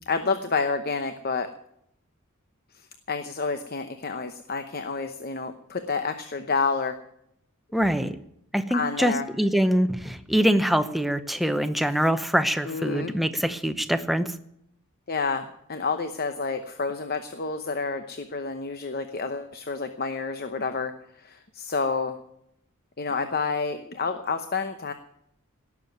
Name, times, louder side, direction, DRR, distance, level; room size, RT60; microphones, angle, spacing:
voice 1, 0.1-1.5 3.1-7.0 8.7-9.3 12.6-13.1 15.1-20.9 21.2-22.2 23.0-24.9, left 4 dB, 45° left, 8 dB, 0.9 m, -29 dB
voice 2, 7.7-8.1 8.5-14.3, equal, ahead, 9 dB, 0.8 m, -24 dB
18.0 x 7.3 x 9.3 m, 0.76 s
head